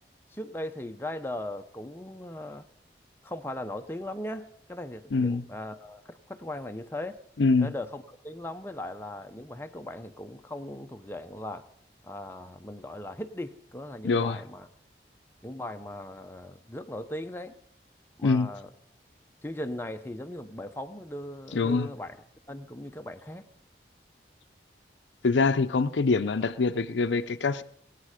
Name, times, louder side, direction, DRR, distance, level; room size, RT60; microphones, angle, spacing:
voice 1, 0.3-2.7 3.2-7.2 7.6-11.7 12.0-14.7 15.4-17.6 18.2-18.7 19.4-22.2 22.5-23.5, left 1 dB, 15° left, 0.7 m, -38 dB
voice 2, 5.1-5.5 7.4-7.7 14.0-14.4 18.2-18.5 21.5-21.9 25.2-27.6, left 4 dB, 90° left, 0.6 m, -24 dB
21.5 x 8.4 x 5.0 m
head